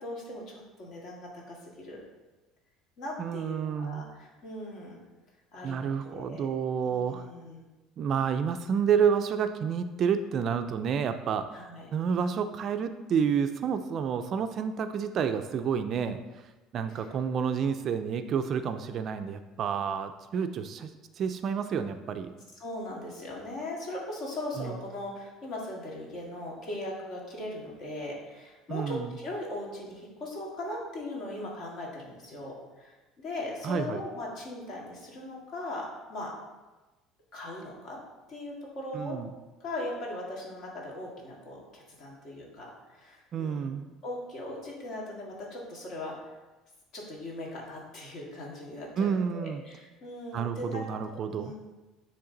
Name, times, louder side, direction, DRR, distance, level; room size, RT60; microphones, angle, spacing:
voice 1, 0.0-2.0 3.0-5.0 5.5-6.5 6.9-7.6 11.5-11.9 16.9-17.1 22.6-36.3 37.3-38.0 38.3-39.2 39.6-43.7 44.0-46.4 46.9-51.5, left 1 dB, 50° left, -3 dB, 1.9 m, -39 dB
voice 2, 3.2-4.0 5.6-7.3 8.0-11.5 11.9-16.2 16.7-20.9 21.2-22.3 24.6-24.7 28.7-29.1 33.6-34.0 38.9-39.3 43.3-43.9 49.0-49.6 50.3-51.5, right 7 dB, 40° right, 8 dB, 0.3 m, -29 dB
9.6 x 3.3 x 3.8 m, 1.2 s
cardioid pair, 140°, 0 cm